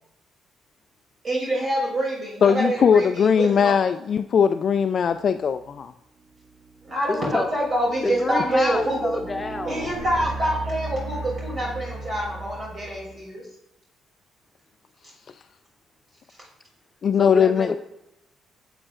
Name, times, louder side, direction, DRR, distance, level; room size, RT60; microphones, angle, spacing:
voice 1, 1.2-3.8 6.8-9.1 9.6-13.4, right 1 dB, 40° right, -4 dB, 2.7 m, -26 dB
voice 2, 2.4-5.9 17.0-17.8, left 7 dB, 55° left, 8 dB, 0.3 m, -20 dB
sound 1, 5.5-5.8 6.4-13.3, right 3 dB, 70° right, 1.6 m, -36 dB
voice 3, 7.1-7.5 8.0-9.9 17.2-17.8, left 3 dB, 25° left, 5 dB, 1.0 m, -28 dB
8.7 x 7.8 x 2.5 m, 0.83 s
cardioid pair, 90°, 0 cm